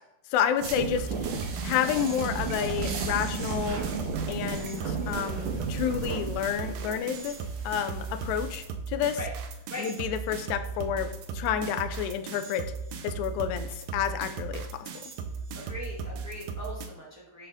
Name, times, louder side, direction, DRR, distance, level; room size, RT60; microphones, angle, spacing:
voice 1, 0.3-1.1 1.6-3.8 4.3-7.4 7.6-9.2 9.8-11.1 11.3-12.6 13.0-15.1, left 9 dB, 90° left, 8 dB, 1.9 m, -30 dB
sound 1, 0.6-8.6, right 5 dB, 65° right, 1.5 m, -34 dB
sound 2, 0.9-16.9, right 5 dB, 85° right, 2.1 m, -37 dB
voice 2, 15.5-17.5, left 1 dB, 20° right, -5 dB, 0.4 m, -40 dB
10.0 x 3.5 x 3.6 m, 0.89 s
omnidirectional pair, 3.3 m